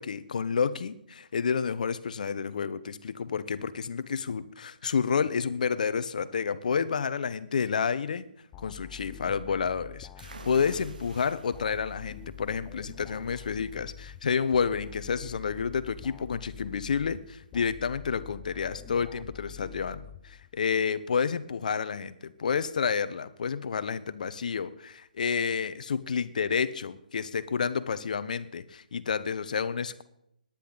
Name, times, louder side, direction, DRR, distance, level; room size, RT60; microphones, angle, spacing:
voice 1, 0.0-8.2 8.6-30.0, left 6 dB, 60° left, 14 dB, 1.0 m, -30 dB
sound 1, 8.5-20.7, left 8 dB, 20° left, 0.5 m, -46 dB
sound 2, 10.2-17.7, right 3 dB, 65° right, 2.2 m, -52 dB
18.5 x 10.5 x 4.1 m, 0.77 s
figure-of-eight pair, 145°, 5 cm